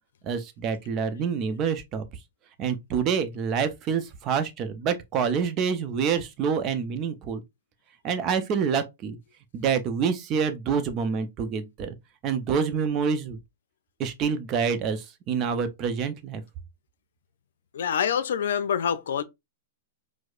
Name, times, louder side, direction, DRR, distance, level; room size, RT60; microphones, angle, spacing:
voice 1, 0.2-2.1 2.6-7.4 8.0-9.2 9.5-12.0 12.2-13.4 14.0-16.4, right 6 dB, 35° right, 0.6 m, -27 dB
voice 2, 17.7-19.2, left 8 dB, 75° left, 0.5 m, -26 dB
4.6 x 2.0 x 2.5 m
hypercardioid pair, 130°, 0 cm